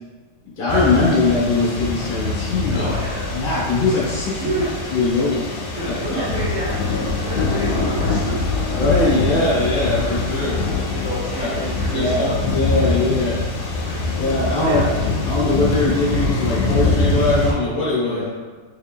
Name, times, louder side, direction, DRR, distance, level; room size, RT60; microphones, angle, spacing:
voice 1, 0.6-2.9 3.3-4.4 4.9-5.4 5.8-6.3 8.8-10.6 11.4-11.5 11.9-13.4 14.2-18.4, left 2 dB, 40° left, -7 dB, 0.8 m, -21 dB
sound 1, 0.7-17.5, left 3 dB, 80° left, 1.5 m, -23 dB
voice 2, 2.7-3.4 4.3-4.7 5.7-8.7 10.9-12.9 13.8-14.1 14.6-14.9 18.0-18.4, right 1 dB, 45° right, -11 dB, 1.4 m, -29 dB
4.5 x 3.1 x 2.3 m, 1.3 s
omnidirectional pair, 2.4 m